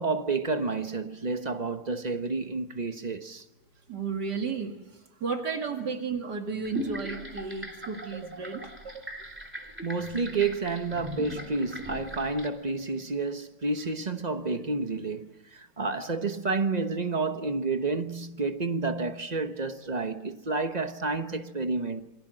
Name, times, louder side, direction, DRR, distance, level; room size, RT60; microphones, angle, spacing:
voice 1, 0.0-3.4 9.8-22.1, right 3 dB, 30° right, 1.1 m, -30 dB
voice 2, 3.9-4.7 5.2-9.0, right 5 dB, 75° right, 2.7 m, -33 dB
sound 1, 6.6-12.5, left 1 dB, 5° right, 3.1 m, -40 dB
28.0 x 24.0 x 7.7 m
omnidirectional pair, 1.8 m